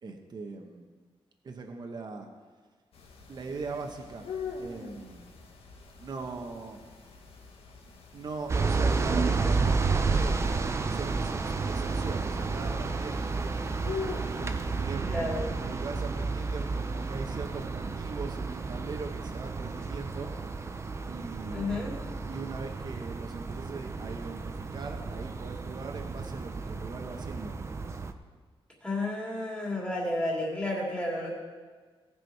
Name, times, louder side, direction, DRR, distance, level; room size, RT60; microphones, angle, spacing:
voice 1, 0.0-0.9 1.4-2.3 3.3-5.3 6.0-6.8 8.1-13.8 14.8-20.3 21.0-21.9 22.3-27.6, right 4 dB, 45° right, 3 dB, 1.1 m, -41 dB
sound 1, 2.9-14.8, left 5 dB, 80° left, 1.4 m, -44 dB
sound 2, 8.5-28.1, right 4 dB, 30° right, 0.5 m, -31 dB
voice 2, 15.0-15.5 21.5-21.9 28.8-31.3, left 1 dB, 10° left, -4 dB, 2.8 m, -31 dB
18.0 x 6.1 x 4.7 m, 1.5 s
wide cardioid pair, 160°, 10 cm